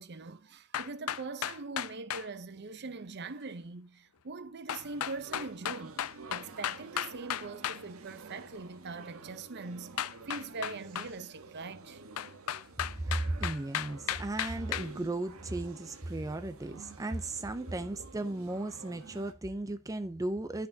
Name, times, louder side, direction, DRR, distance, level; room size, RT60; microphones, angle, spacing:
voice 1, 0.0-6.0 6.3-12.0, right 3 dB, 50° right, 0.7 m, -42 dB
sound 1, 0.7-2.3 4.7-7.8 10.0-11.1 12.2-14.9, left 10 dB, 90° left, 0.5 m, -35 dB
sound 2, 4.7-19.3, right 4 dB, 85° right, 1.2 m, -50 dB
voice 2, 13.0-20.7, right 2 dB, 15° right, 0.4 m, -35 dB
11.5 x 5.8 x 2.7 m
head